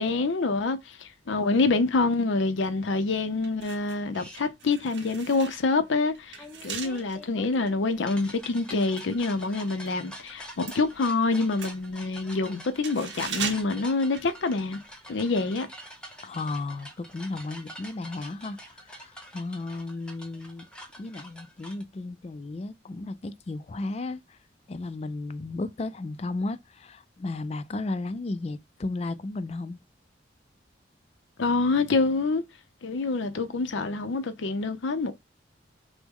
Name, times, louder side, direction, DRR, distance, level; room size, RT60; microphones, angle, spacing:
voice 1, 0.0-14.8 15.1-15.7 31.4-32.4 32.8-35.1, left 3 dB, 80° left, 0.5 m, -26 dB
sound 1, 3.3-10.0 10.2-14.9 15.2-15.3, right 6 dB, 70° right, 1.0 m, -40 dB
sound 2, 4.1-4.4 6.4-21.8, equal, 5° left, 0.8 m, -46 dB
voice 2, 16.2-20.7 21.0-24.4 24.7-29.8, left 2 dB, 35° left, 0.3 m, -34 dB
6.0 x 2.1 x 3.6 m
head